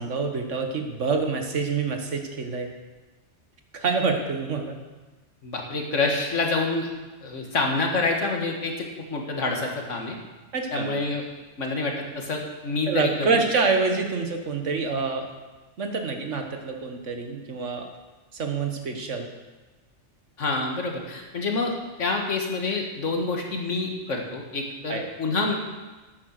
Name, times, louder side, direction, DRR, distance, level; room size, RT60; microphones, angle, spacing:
voice 1, 0.0-2.7 3.7-4.8 10.5-11.0 12.9-15.3 15.8-17.8 18.3-19.3 24.9-25.1, right 4 dB, 75° right, 4 dB, 1.7 m, -26 dB
voice 2, 5.4-6.9 7.2-10.1 10.7-11.2 11.6-13.4 20.4-25.5, left 3 dB, 75° left, 1 dB, 2.0 m, -27 dB
10.5 x 8.9 x 6.6 m, 1.2 s
omnidirectional pair, 1.3 m